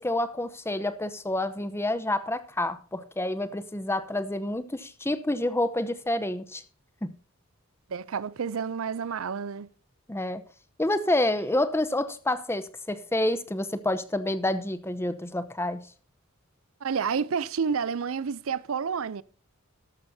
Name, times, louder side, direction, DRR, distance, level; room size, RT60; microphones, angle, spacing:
voice 1, 0.0-6.6 7.0-7.1 10.1-10.4 10.8-15.8, left 1 dB, 10° left, 0.8 m, -28 dB
voice 2, 7.9-9.7 16.8-19.2, right 6 dB, 70° right, 0.5 m, -29 dB
13.5 x 11.5 x 2.7 m
head